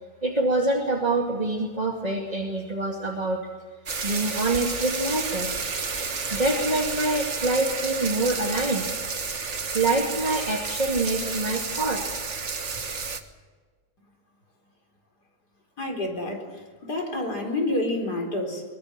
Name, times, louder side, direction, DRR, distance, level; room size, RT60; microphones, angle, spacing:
voice 1, 0.2-3.4 4.0-5.5 6.3-8.9 9.7-12.2, right 2 dB, 15° right, 0 dB, 1.9 m, -25 dB
sound 1, 3.9-13.2, right 4 dB, 35° right, 1.1 m, -31 dB
voice 2, 15.8-18.6, left 1 dB, 30° left, 3 dB, 4.6 m, -29 dB
23.0 x 22.0 x 7.6 m, 1.5 s
omnidirectional pair, 3.3 m